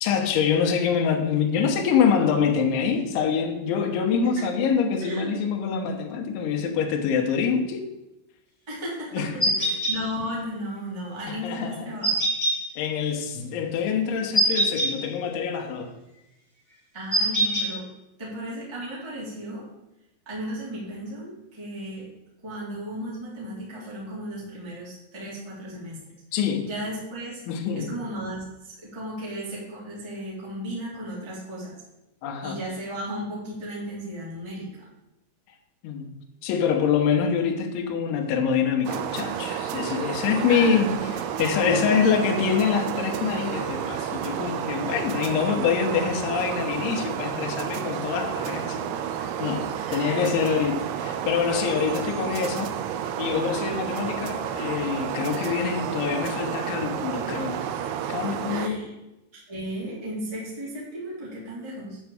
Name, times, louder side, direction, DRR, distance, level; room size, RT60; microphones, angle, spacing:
voice 1, 0.0-7.8 9.1-9.6 11.3-11.9 12.8-15.9 26.3-26.7 27.5-27.9 32.2-32.6 35.8-36.1 36.4-48.9 49.4-52.8 53.2-57.6 58.1-58.9, left 6 dB, 80° left, 2 dB, 3.5 m, -25 dB
voice 2, 5.0-5.3 8.7-12.2 16.9-17.9 18.2-19.7 20.2-22.1 22.4-26.0 26.6-27.4 27.7-31.7 32.4-34.9 40.5-41.0 41.6-42.0 49.7-50.2 58.5-58.9 59.3-62.0, equal, 5° right, -7 dB, 2.5 m, -35 dB
sound 1, 9.4-9.9 12.0-12.5 14.3-14.9 17.1-17.7, right 1 dB, 15° left, 2.3 m, -22 dB
sound 2, 38.9-58.7, right 9 dB, 85° right, 2.7 m, -31 dB
9.3 x 4.7 x 7.7 m, 0.94 s
omnidirectional pair, 5.5 m